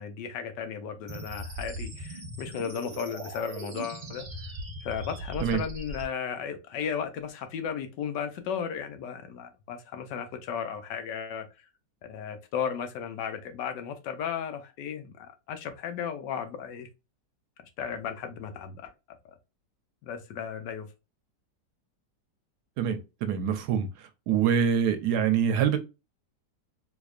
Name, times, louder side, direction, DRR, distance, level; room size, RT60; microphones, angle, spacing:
voice 1, 0.0-4.3 4.8-11.5 12.0-16.9 17.8-18.9 19.2-19.3 20.0-20.9, left 7 dB, 80° left, 1.3 m, -35 dB
sound 1, 1.1-6.0, right 1 dB, 35° right, 0.7 m, -39 dB
voice 2, 22.8-23.9 24.3-25.8, right 8 dB, 70° right, 1.1 m, -25 dB
4.1 x 2.8 x 2.4 m
omnidirectional pair, 1.9 m